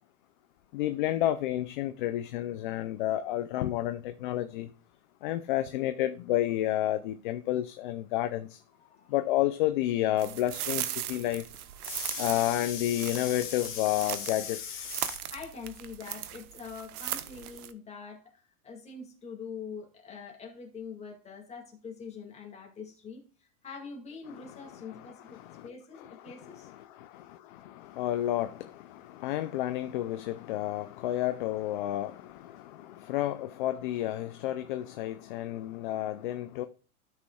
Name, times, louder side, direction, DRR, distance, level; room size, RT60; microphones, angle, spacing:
voice 1, 0.7-4.7 5.2-8.6 9.1-11.5 11.8-15.2 24.9-25.7 26.0-36.7, left 13 dB, 35° left, 0.4 m, -31 dB
sound 1, 10.2-14.4 14.7-17.7, right 12 dB, 75° right, 0.9 m, -38 dB
voice 2, 11.9-12.2 15.3-26.7, left 5 dB, 15° left, 2.0 m, -44 dB
13.0 x 6.3 x 2.3 m
supercardioid pair, 150°, 45 cm